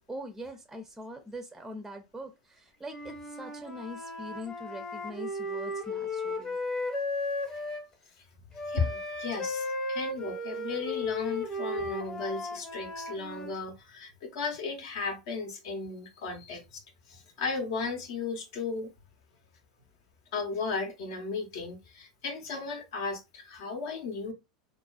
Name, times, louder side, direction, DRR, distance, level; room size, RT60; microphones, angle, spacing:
voice 1, 0.0-6.6, equal, 5° right, 0.4 m, -42 dB
Wind instrument woodwind instrument, 2.8-7.9 8.6-13.5, left 2 dB, 25° left, 0.9 m, -35 dB
voice 2, 8.7-16.8 17.1-18.9 20.3-24.3, left 4 dB, 70° left, 0.8 m, -35 dB
2.3 x 2.3 x 2.3 m
hypercardioid pair, 95°, 3 cm